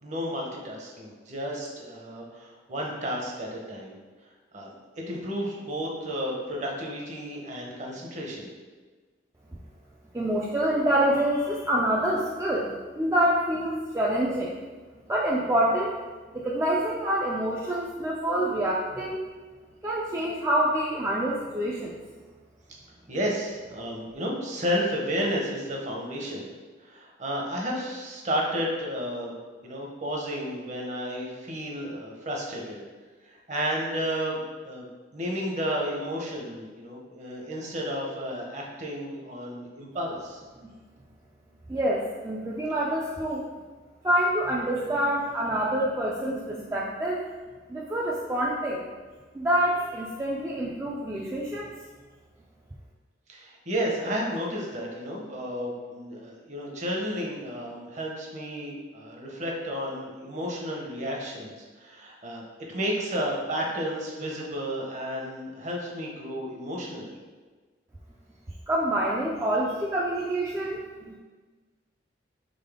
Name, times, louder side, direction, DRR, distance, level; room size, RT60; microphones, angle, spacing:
voice 1, 0.0-4.0 4.5-8.5 23.1-26.5 26.8-29.3 29.6-32.8 33.5-40.4 44.7-44.8 53.3-62.4 62.7-67.1, equal, 40° right, -1 dB, 0.8 m, -32 dB
voice 2, 10.1-12.7 13.0-14.5 15.1-16.0 16.3-19.2 19.8-21.9 40.6-40.7 41.7-43.4 44.0-47.2 47.7-48.9 49.3-51.7 68.7-70.8, right 1 dB, 15° right, -5 dB, 0.3 m, -26 dB
4.0 x 3.6 x 3.5 m, 1.4 s
head